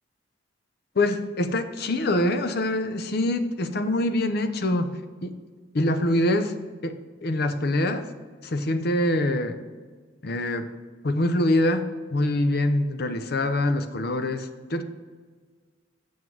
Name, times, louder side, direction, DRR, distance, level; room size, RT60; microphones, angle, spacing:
voice 1, 1.0-5.3 5.7-6.5 6.8-8.1 8.4-9.6 10.2-10.7 11.0-14.8, left 1 dB, 55° left, 9 dB, 0.6 m, -25 dB
7.3 x 6.3 x 4.7 m, 1.5 s
head